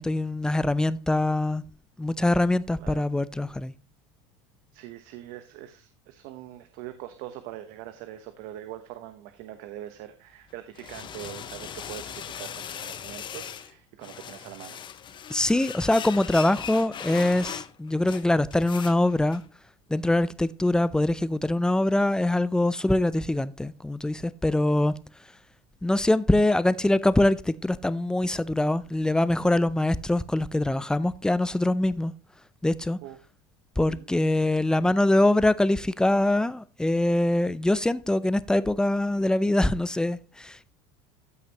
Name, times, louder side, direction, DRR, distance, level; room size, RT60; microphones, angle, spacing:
voice 1, 0.0-1.6 2.0-3.7 15.3-19.4 19.9-24.9 25.8-32.1 32.6-33.0 33.8-40.7, left 1 dB, 5° left, 0.4 m, -23 dB
voice 2, 4.7-14.8 33.0-33.2 33.9-34.1, right 13 dB, 65° right, 1.0 m, -42 dB
sound 1, 10.5-13.7 14.0-19.5, left 8 dB, 30° left, 0.8 m, -39 dB
14.0 x 6.2 x 2.9 m
supercardioid pair, 115°, 16 cm